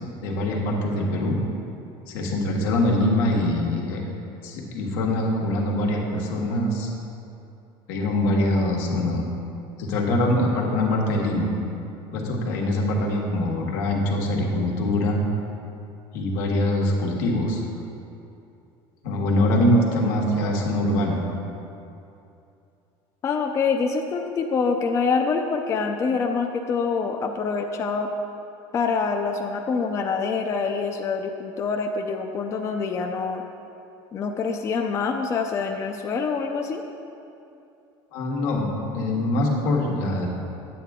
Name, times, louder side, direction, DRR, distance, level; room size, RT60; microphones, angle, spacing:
voice 1, 0.2-1.4 2.1-4.0 4.4-6.9 7.9-9.2 9.8-11.5 12.1-15.2 16.1-17.6 19.0-21.2 38.1-40.3, left 1 dB, 90° left, -1 dB, 1.5 m, -23 dB
voice 2, 23.2-28.1 28.7-33.4 34.1-36.8, left 5 dB, 25° left, 3 dB, 0.4 m, -25 dB
9.0 x 8.5 x 3.6 m, 2.7 s
cardioid pair, 155°, 11 cm